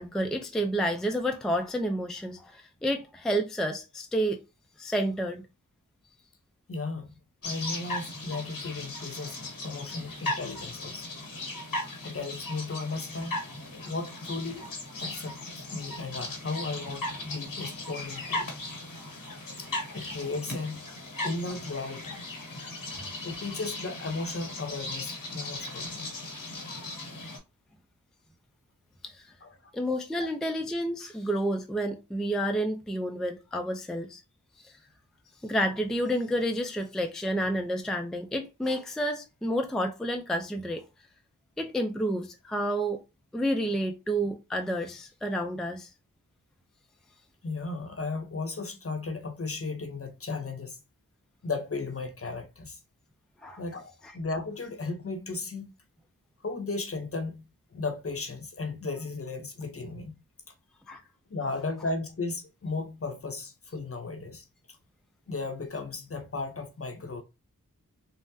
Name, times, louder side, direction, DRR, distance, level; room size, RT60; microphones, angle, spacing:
voice 1, 0.0-4.4 4.8-5.4 29.0-29.3 29.7-34.2 34.6-34.7 35.4-40.8 41.6-43.0 43.3-45.9 53.4-53.6 60.9-61.0, equal, ahead, 0.4 m, -30 dB
voice 2, 6.7-7.1 7.4-11.1 12.0-13.4 13.8-14.7 15.0-18.5 19.6-20.9 21.2-22.2 23.2-26.1 29.4-29.7 30.2-30.3 47.4-50.8 51.4-52.8 53.6-55.7 56.4-60.2 61.3-64.5 65.3-67.2, left 3 dB, 45° left, 0.7 m, -35 dB
sound 1, 7.4-27.4, left 2 dB, 85° left, 1.2 m, -37 dB
3.4 x 2.1 x 2.6 m
wide cardioid pair, 55°, 33 cm